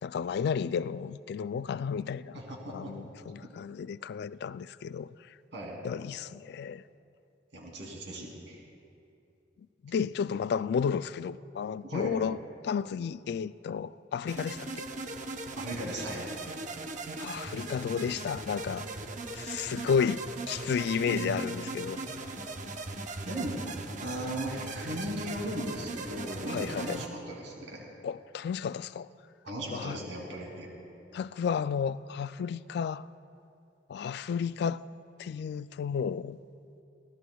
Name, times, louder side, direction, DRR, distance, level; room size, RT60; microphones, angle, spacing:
voice 1, 0.0-2.4 2.7-5.3 5.8-6.8 9.8-12.4 12.6-14.9 17.2-18.9 19.3-22.0 26.5-27.0 28.0-29.1 29.7-30.0 31.1-33.1 33.9-34.8 35.2-36.4, left 6 dB, 60° left, 0.3 m, -32 dB
voice 2, 2.3-2.9 5.5-5.8 7.5-8.6 11.8-12.1 15.6-16.2 21.1-21.5 23.2-23.6 24.0-27.8 29.4-30.7, right 1 dB, 85° right, 2.9 m, -37 dB
sound 1, 14.3-27.1, right 3 dB, 45° right, 0.8 m, -39 dB
25.0 x 16.5 x 2.3 m
head